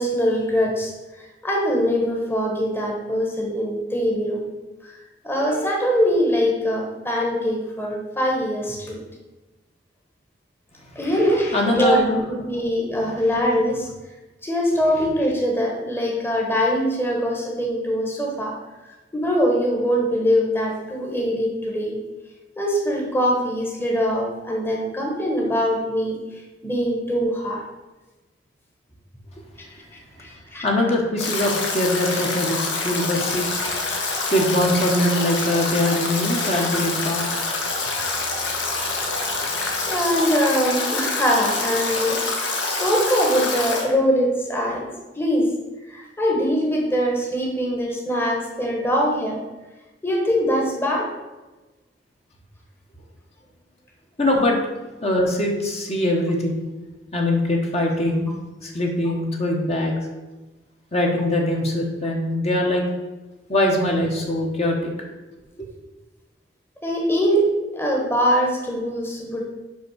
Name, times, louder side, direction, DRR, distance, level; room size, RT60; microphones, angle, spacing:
voice 1, 0.0-4.5 4.8-4.9 5.2-9.0 10.9-12.0 12.3-13.9 14.4-18.6 19.1-22.0 22.6-26.2 26.6-27.6 30.2-30.7 39.9-44.9 45.2-45.5 45.9-49.4 50.0-51.1 66.8-69.5, equal, 15° left, -1 dB, 1.2 m, -22 dB
voice 2, 11.5-12.2 30.6-33.6 34.0-37.4 38.9-39.5 54.2-54.6 55.0-56.6 57.1-58.3 58.6-59.9 60.9-62.8 63.5-64.9, left 1 dB, 35° left, 0 dB, 1.2 m, -22 dB
Stream / Drip / Trickle dribble, 31.2-43.8, left 3 dB, 80° left, 1.6 m, -26 dB
6.1 x 5.3 x 6.3 m, 1.1 s
head